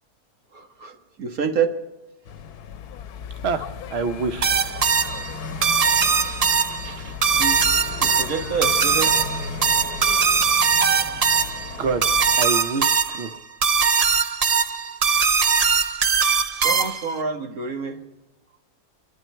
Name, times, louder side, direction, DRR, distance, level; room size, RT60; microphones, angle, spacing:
voice 1, 0.5-1.8 6.0-7.6 8.0-9.1 16.5-18.0, right 6 dB, 70° right, 4 dB, 2.0 m, -28 dB
sound 1, 2.2-12.4, left 6 dB, 90° left, 1.3 m, -35 dB
voice 2, 3.9-4.5 11.8-13.3, right 4 dB, 50° right, 8 dB, 0.9 m, -26 dB
sound 2, 4.4-17.2, right 6 dB, 85° right, 0.3 m, -21 dB
26.0 x 12.0 x 4.5 m, 1.0 s
omnidirectional pair, 1.6 m